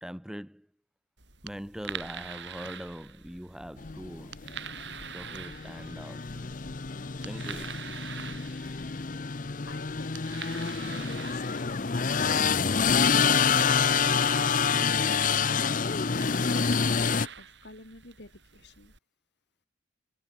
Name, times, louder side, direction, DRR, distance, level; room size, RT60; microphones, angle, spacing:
voice 1, 0.0-0.7 1.4-4.4 5.1-6.3 7.2-8.0, equal, 5° right, 0.9 m, -42 dB
sound 1, 1.2-19.0, right 7 dB, 60° right, 6.0 m, -45 dB
sound 2, 3.8-17.3, left 6 dB, 40° left, 0.7 m, -27 dB
voice 2, 9.7-10.2 10.6-13.8 14.1-14.6 15.0-18.9, left 2 dB, 55° left, 3.9 m, -49 dB
head